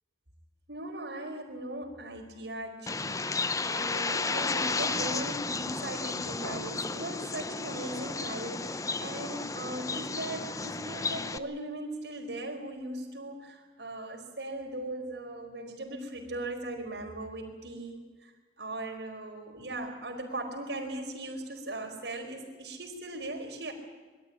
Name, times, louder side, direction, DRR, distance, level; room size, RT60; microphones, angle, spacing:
voice 1, 0.7-18.3 18.6-23.7, right 1 dB, 75° right, 2 dB, 4.7 m, -39 dB
Bird, 2.9-11.4, left 3 dB, 20° left, 0.7 m, -33 dB
23.0 x 13.0 x 9.8 m, 1.4 s
head